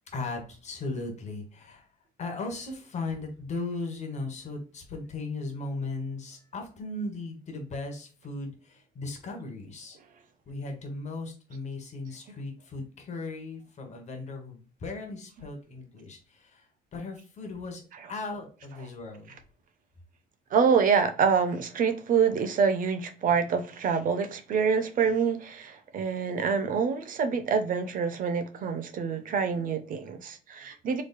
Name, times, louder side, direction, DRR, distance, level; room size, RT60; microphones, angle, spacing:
voice 1, 0.1-1.9 2.2-10.0 10.5-17.8 18.1-19.3, left 3 dB, 45° left, 1.3 m, -37 dB
voice 2, 20.5-31.0, right 6 dB, 55° right, 0.7 m, -26 dB
4.0 x 3.2 x 2.2 m
cardioid pair, 110°, 17 cm